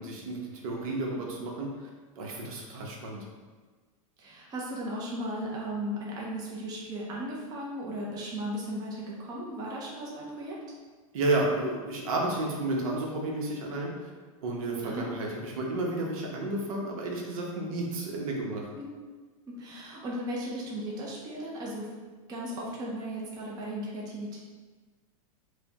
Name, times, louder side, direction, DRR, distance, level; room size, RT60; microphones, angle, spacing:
voice 1, 0.0-1.9 2.2-3.2 11.1-14.1 14.4-18.6, right 2 dB, 70° right, -1 dB, 0.9 m, -31 dB
voice 2, 4.2-10.6 14.8-15.1 18.8-18.9 19.5-21.9 22.3-24.4, equal, 20° right, -4 dB, 0.6 m, -36 dB
4.8 x 2.2 x 2.8 m, 1.4 s
supercardioid pair, 145°, 18 cm